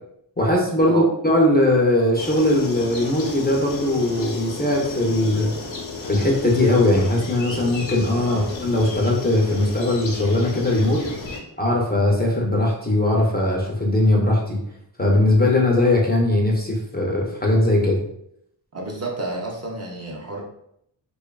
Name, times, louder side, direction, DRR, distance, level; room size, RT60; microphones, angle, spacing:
voice 1, 0.4-5.5 6.1-11.0 11.6-14.6 15.0-18.0, left 1 dB, 25° left, -3 dB, 0.4 m, -20 dB
sound 1, 2.2-11.4, left 3 dB, 75° left, 0.7 m, -33 dB
voice 2, 18.7-20.4, right 2 dB, 35° right, -1 dB, 0.5 m, -30 dB
2.7 x 2.2 x 2.2 m, 0.74 s
wide cardioid pair, 105°, 45 cm